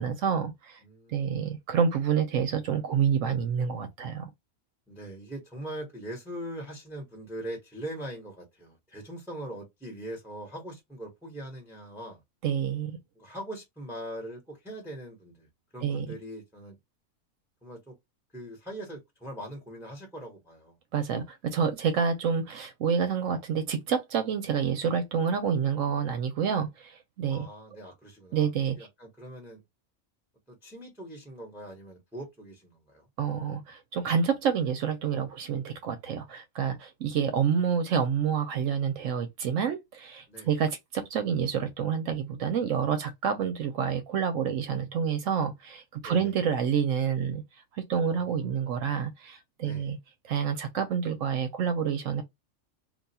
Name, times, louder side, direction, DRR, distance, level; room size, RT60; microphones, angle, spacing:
voice 1, 0.0-0.8 1.1-4.3 12.4-12.9 15.8-16.1 20.9-27.5 28.3-28.8 33.2-47.4 47.8-50.0 50.2-52.2, right 7 dB, 75° right, 1.0 m, -28 dB
voice 2, 0.8-1.3 4.9-12.2 13.2-15.5 15.7-16.8 17.6-17.9 18.3-20.7 27.3-28.5 28.8-29.6 30.5-33.1 40.3-40.5 46.0-46.3 48.0-48.8 49.6-49.9, right 1 dB, ahead, 1.0 m, -41 dB
2.5 x 2.3 x 4.1 m
omnidirectional pair, 1.4 m